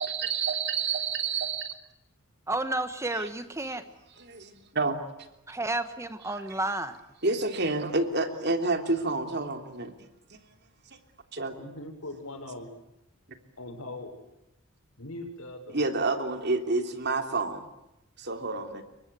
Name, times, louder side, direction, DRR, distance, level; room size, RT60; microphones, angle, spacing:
voice 1, 0.0-1.7 3.1-3.3 4.2-5.0 7.2-9.9 10.3-10.4 10.9-11.0 11.3-11.5 15.7-17.7 18.2-18.8, right 3 dB, 50° right, 3.2 m, -29 dB
voice 2, 2.5-3.9 5.5-7.0, right 2 dB, 15° right, 1.2 m, -31 dB
voice 3, 11.5-12.7 13.6-14.1 15.0-15.8, left 2 dB, 75° left, 6.6 m, -40 dB
29.0 x 24.0 x 8.3 m
head